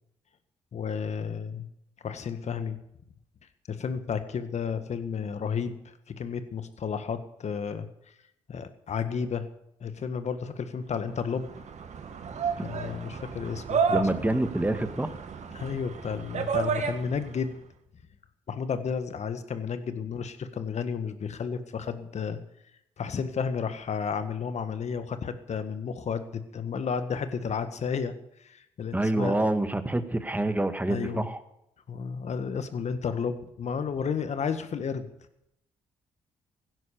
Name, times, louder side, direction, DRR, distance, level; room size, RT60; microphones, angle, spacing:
voice 1, 0.7-1.7 2.0-2.8 3.7-7.9 8.5-9.4 9.8-11.5 12.6-14.0 15.5-17.6 18.5-22.4 23.0-28.1 28.4-29.3 30.9-31.3 31.9-35.1, left 6 dB, 55° left, 10 dB, 1.7 m, -32 dB
sound 1, 11.1-17.4, right 6 dB, 55° right, 1.9 m, -32 dB
voice 2, 13.9-15.1 28.9-31.4, right 1 dB, 10° right, 9 dB, 1.8 m, -27 dB
16.0 x 11.0 x 6.8 m, 0.79 s
hypercardioid pair, 45°, 14 cm